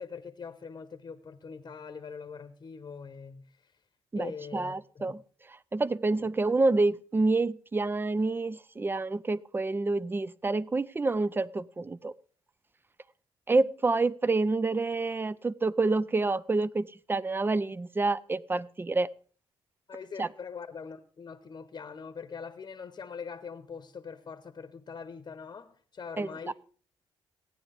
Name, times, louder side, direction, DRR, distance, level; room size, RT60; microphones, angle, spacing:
voice 1, 0.0-3.4 4.2-5.0 19.9-26.5, left 5 dB, 40° left, 0.9 m, -42 dB
voice 2, 4.1-5.2 5.5-12.1 13.5-19.1 20.2-20.3 26.2-26.5, right 3 dB, 20° right, 0.4 m, -28 dB
15.5 x 9.4 x 3.4 m
cardioid pair, 75°, 11 cm